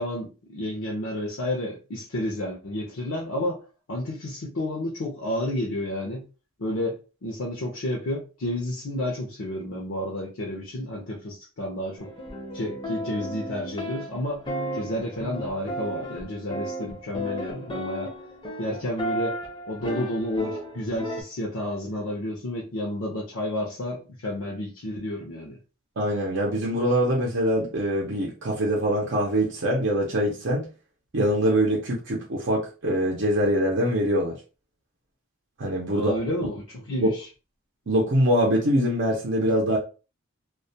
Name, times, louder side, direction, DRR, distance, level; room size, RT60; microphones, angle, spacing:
voice 1, 0.0-3.6 3.9-6.2 6.6-12.1 12.5-14.4 14.7-18.1 18.6-19.4 19.7-25.6 35.9-37.3, left 1 dB, 65° left, 0.6 m, -31 dB
sound 1, 12.0-21.2, equal, 20° left, 0.5 m, -34 dB
voice 2, 26.0-30.7 31.1-34.3 35.6-36.1 37.0-37.1 37.9-39.8, equal, 55° right, 0.6 m, -23 dB
2.2 x 2.1 x 2.6 m
head